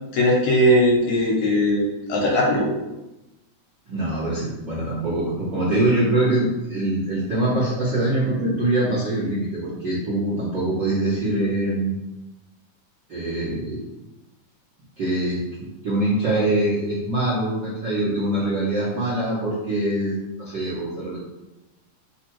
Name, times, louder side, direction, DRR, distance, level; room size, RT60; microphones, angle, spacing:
voice 1, 0.1-2.7, equal, 70° left, -2 dB, 2.2 m, -19 dB
voice 2, 3.9-11.9 13.1-13.9 15.0-21.2, right 1 dB, 60° right, -10 dB, 1.2 m, -24 dB
4.9 x 2.4 x 4.4 m, 0.99 s
omnidirectional pair, 3.6 m